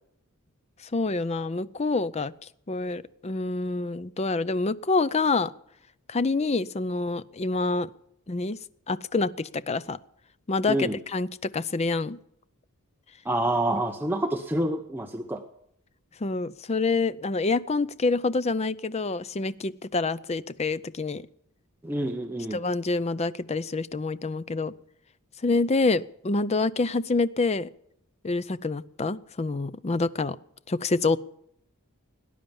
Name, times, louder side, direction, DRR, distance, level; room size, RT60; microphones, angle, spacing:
voice 1, 0.9-2.3 2.7-5.5 6.1-7.9 8.3-8.6 8.9-10.0 10.5-12.2 16.2-21.2 22.5-24.7 25.4-27.7 28.2-30.4 30.7-31.2, left 3 dB, 30° left, 16 dB, 0.5 m, -27 dB
voice 2, 13.2-15.4 21.8-22.6, right 1 dB, 10° right, 4 dB, 0.8 m, -27 dB
18.5 x 10.5 x 7.1 m, 0.75 s
head